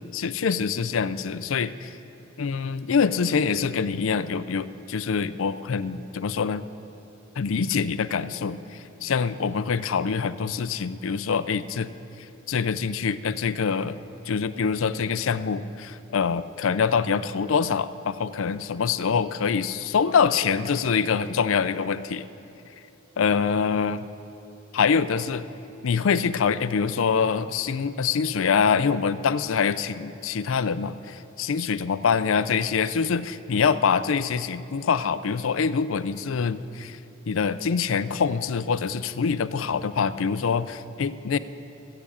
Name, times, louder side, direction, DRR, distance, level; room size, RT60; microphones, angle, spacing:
voice 1, 0.1-1.9 2.4-6.6 7.4-11.9 12.5-14.0 14.3-22.3 23.2-24.1 24.7-25.5 25.8-37.0 37.3-41.4, left 6 dB, 70° left, 13 dB, 0.4 m, -25 dB
14.0 x 8.5 x 8.4 m, 2.8 s
head